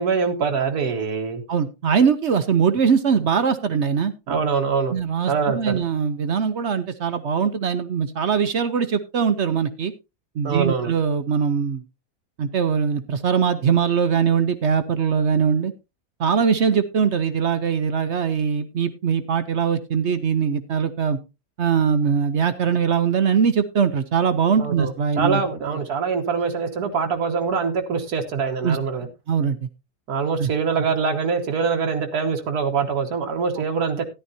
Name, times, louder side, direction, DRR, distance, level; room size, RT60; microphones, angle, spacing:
voice 1, 0.0-1.4 4.3-5.0 5.3-5.8 10.4-10.9 24.6-29.1 30.1-34.0, right 5 dB, 80° right, 1.6 m, -24 dB
voice 2, 1.5-4.1 4.9-9.9 10.4-11.8 12.4-15.7 16.2-21.2 21.6-25.4 28.6-28.8 29.3-29.7 30.4-30.5, right 6 dB, 55° right, 0.9 m, -21 dB
13.5 x 11.0 x 2.7 m
omnidirectional pair, 1.6 m